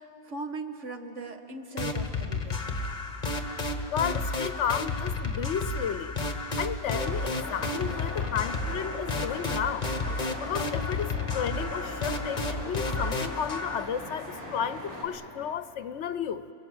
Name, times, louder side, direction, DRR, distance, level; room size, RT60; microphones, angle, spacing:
voice 1, 0.0-2.6, right 3 dB, 75° right, 5 dB, 1.8 m, -39 dB
sound 1, 1.8-13.8, left 3 dB, 40° left, 1.5 m, -32 dB
voice 2, 3.9-6.2 6.6-9.9 10.4-16.5, left 8 dB, 75° left, 13 dB, 1.0 m, -33 dB
sound 2, 6.8-15.1, left 1 dB, 10° left, 6.5 m, -40 dB
28.5 x 21.0 x 8.0 m, 2.8 s
omnidirectional pair, 1.2 m